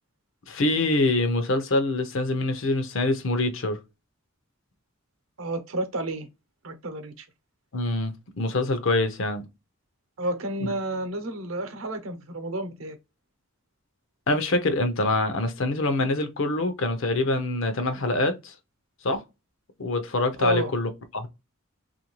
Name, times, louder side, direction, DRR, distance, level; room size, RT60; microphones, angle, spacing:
voice 1, 0.5-3.8 7.7-9.4 10.6-10.7 14.3-18.5 19.0-19.2 19.8-21.3, left 2 dB, 65° left, 0.6 m, -25 dB
voice 2, 5.4-6.3 6.6-7.3 10.2-13.0 20.4-20.7, right 1 dB, 75° right, 0.7 m, -30 dB
3.2 x 2.5 x 3.0 m
head